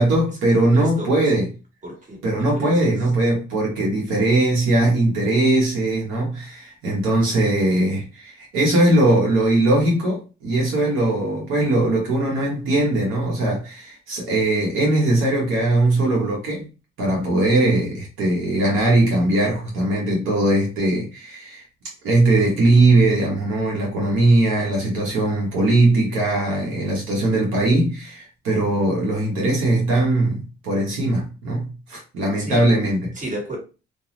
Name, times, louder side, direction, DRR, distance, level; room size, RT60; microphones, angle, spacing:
voice 1, 0.0-1.5 2.2-16.7 17.0-21.6 22.0-33.1, right 2 dB, 90° right, 1.1 m, -20 dB
voice 2, 0.5-1.3 1.8-2.2 2.5-2.9 32.4-32.7 33.1-33.6, right 1 dB, 40° right, 1.5 m, -33 dB
2.4 x 2.3 x 3.0 m
cardioid pair, 90°, 20 cm